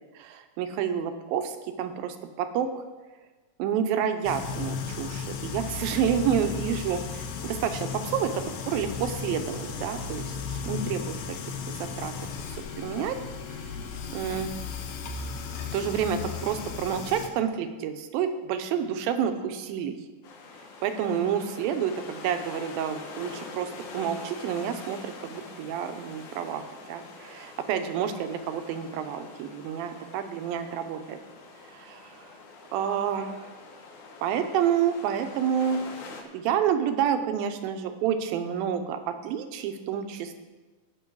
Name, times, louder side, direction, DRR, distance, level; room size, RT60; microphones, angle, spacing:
voice 1, 0.2-2.7 3.6-10.2 10.7-11.4 11.7-12.1 12.5-13.2 13.5-13.6 14.1-14.5 15.5-19.9 20.8-26.6 26.9-31.2 31.7-32.3 32.7-33.5 34.2-35.8 36.3-40.3, right 8 dB, 80° right, 8 dB, 2.6 m, -29 dB
sound 1, 4.2-17.3, left 6 dB, 80° left, 2.9 m, -35 dB
sound 2, 20.2-36.2, left 4 dB, 65° left, 2.5 m, -45 dB
19.0 x 6.7 x 4.7 m, 1.2 s
omnidirectional pair, 4.2 m